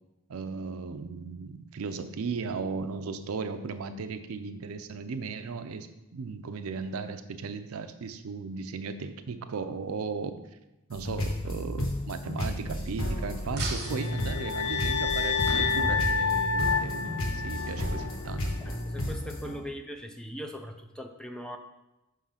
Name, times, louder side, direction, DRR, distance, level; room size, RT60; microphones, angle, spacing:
voice 1, 0.3-5.9 6.1-10.4 10.9-18.6, right 4 dB, 75° right, 9 dB, 0.5 m, -36 dB
sound 1, 10.9-19.6, left 1 dB, 65° left, 1.3 m, -33 dB
sound 2, 13.6-16.8, right 2 dB, 50° right, 0.9 m, -38 dB
sound 3, 13.8-18.1, left 5 dB, 90° left, 0.5 m, -29 dB
voice 2, 18.6-21.6, equal, 5° left, 5 dB, 0.4 m, -40 dB
5.5 x 3.7 x 5.6 m, 0.95 s
head